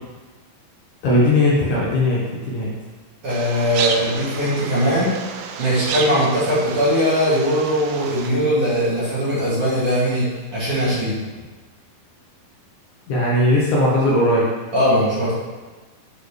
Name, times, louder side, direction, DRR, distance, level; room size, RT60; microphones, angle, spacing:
voice 1, 1.0-2.7 13.1-14.5, left 1 dB, 70° left, -6 dB, 2.2 m, -18 dB
voice 2, 3.2-5.1 5.6-10.2 10.5-11.2 14.7-15.3, equal, 45° right, -10 dB, 2.6 m, -20 dB
sound 1, 3.3-8.3, right 5 dB, 90° right, 1.8 m, -30 dB
8.4 x 4.3 x 3.3 m, 1.3 s
omnidirectional pair, 4.2 m